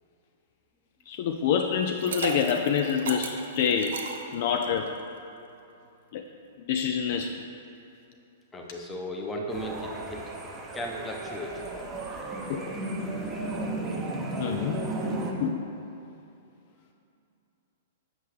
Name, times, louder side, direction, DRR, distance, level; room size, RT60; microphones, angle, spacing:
voice 1, 1.1-4.0 4.3-5.0 6.1-6.2 6.7-7.4 12.5-12.6 14.4-14.8 15.4-15.6, left 7 dB, 50° left, 4 dB, 0.3 m, -26 dB
Liquid, 1.8-4.9, right 6 dB, 65° right, 0.5 m, -36 dB
voice 2, 8.5-10.2 10.7-11.9, equal, 15° left, 0 dB, 0.8 m, -36 dB
sound 1, 9.5-15.3, right 2 dB, 20° right, 0.7 m, -34 dB
7.8 x 5.4 x 3.1 m, 2.7 s
figure-of-eight pair, 105°, 0 cm